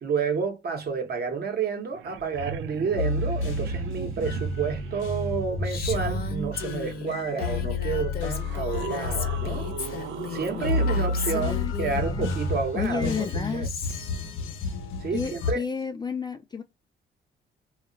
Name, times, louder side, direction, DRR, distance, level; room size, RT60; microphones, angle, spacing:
voice 1, 0.0-9.7 10.3-13.7 15.0-15.6, right 5 dB, 50° right, 0.9 m, -30 dB
sound 1, 1.6-1.7 1.9-5.0 7.5-7.6 8.3-11.4 13.9-14.0, right 9 dB, 70° right, 0.4 m, -38 dB
sound 2, 3.0-15.5, left 2 dB, 85° left, 0.7 m, -30 dB
Female speech woman speaking, 5.6-12.0 12.8-14.2, left 5 dB, 50° left, 0.8 m, -35 dB
voice 2, 11.2-12.3 12.7-14.0 15.1-16.6, left 5 dB, 20° left, 0.4 m, -32 dB
2.4 x 2.1 x 3.6 m
cardioid pair, 90°, 20 cm